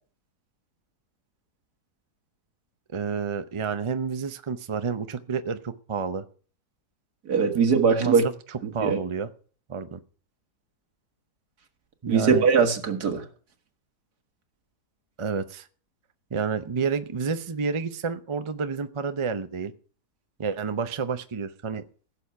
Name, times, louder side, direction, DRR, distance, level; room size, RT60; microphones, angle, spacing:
voice 1, 2.9-6.2 8.0-9.3 9.7-10.0 12.0-12.5 15.2-15.7 16.3-19.7 20.4-21.8, right 5 dB, 45° right, 10 dB, 0.3 m, -29 dB
voice 2, 7.3-8.3 8.6-9.0 12.1-13.2, right 5 dB, 70° right, 6 dB, 2.1 m, -21 dB
16.0 x 7.0 x 5.8 m, 0.42 s
omnidirectional pair, 1.8 m